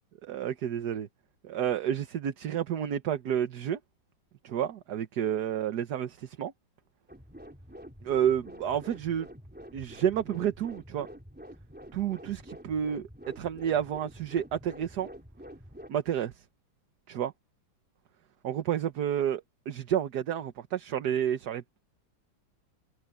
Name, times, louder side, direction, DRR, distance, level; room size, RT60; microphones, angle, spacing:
voice 1, 0.2-1.1 1.4-3.8 4.4-6.5 8.0-9.3 9.7-11.1 11.9-13.1 13.4-15.1 15.9-16.3 17.1-17.3 18.4-21.6, right 9 dB, 60° right, 1.5 m, -30 dB
sound 1, 7.1-15.9, equal, 5° right, 3.9 m, -48 dB
omnidirectional pair, 2.1 m